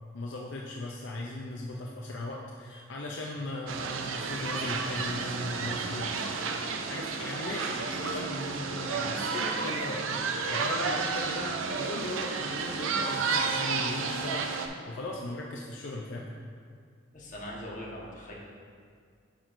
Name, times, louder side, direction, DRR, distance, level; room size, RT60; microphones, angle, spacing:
voice 1, 0.1-6.1 6.9-16.3, left 2 dB, 70° left, -1 dB, 0.5 m, -38 dB
sound 1, 3.7-14.7, right 5 dB, 85° right, 0.5 m, -31 dB
voice 2, 17.1-18.3, left 1 dB, 40° left, -4 dB, 1.2 m, -41 dB
8.8 x 5.8 x 2.6 m, 2.2 s
head